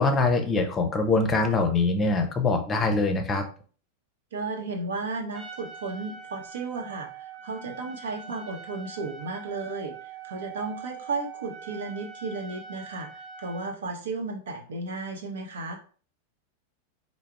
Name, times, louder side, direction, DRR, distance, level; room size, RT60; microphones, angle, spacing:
voice 1, 0.0-3.4, left 3 dB, 20° left, 5 dB, 0.6 m, -23 dB
voice 2, 4.3-15.8, right 3 dB, 60° right, 3 dB, 0.8 m, -34 dB
Trumpet, 5.3-13.8, right 6 dB, 5° right, 1.1 m, -43 dB
4.6 x 2.0 x 3.4 m, 0.41 s
figure-of-eight pair, 90°, 0 cm